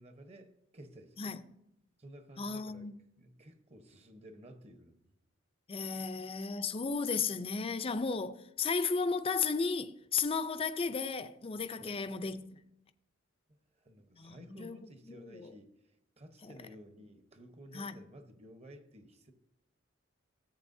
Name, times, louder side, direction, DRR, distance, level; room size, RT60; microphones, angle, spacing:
voice 1, 0.0-1.3 2.0-2.9 3.2-5.2 11.8-12.0 13.5-19.3, right 1 dB, 35° right, 1.0 m, -54 dB
voice 2, 2.4-2.9 5.7-12.6 14.2-14.8 15.1-15.5 16.4-16.5 17.7-18.0, left 5 dB, 30° left, 0.5 m, -34 dB
14.5 x 8.3 x 2.7 m
head